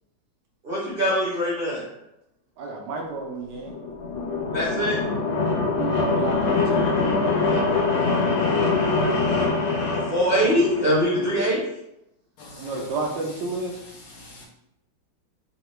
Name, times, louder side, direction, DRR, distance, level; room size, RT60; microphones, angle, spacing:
voice 1, 0.6-1.8 4.5-5.0 9.9-11.7, equal, 45° right, 0.7 m, -23 dB
voice 2, 2.6-3.7 5.8-6.9 12.6-13.8, right 3 dB, 70° right, 1.1 m, -31 dB
sound 1, 3.6-11.5, left 3 dB, 85° left, 1.7 m, -24 dB
voice 3, 12.4-13.1 13.7-14.5, left 2 dB, 70° left, 1.1 m, -44 dB
3.7 x 2.1 x 3.0 m
omnidirectional pair, 2.2 m